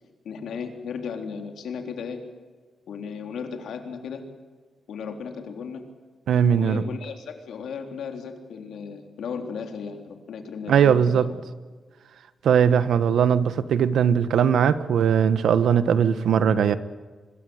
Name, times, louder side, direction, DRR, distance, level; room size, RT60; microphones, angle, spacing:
voice 1, 0.2-2.2 2.9-4.2 4.9-5.8 6.6-11.3, left 6 dB, 80° left, 5 dB, 3.6 m, -35 dB
voice 2, 6.3-6.8 10.7-11.3 12.4-16.8, right 8 dB, 85° right, 13 dB, 1.3 m, -20 dB
25.0 x 21.5 x 7.9 m, 1.4 s
wide cardioid pair, 170°, 0 cm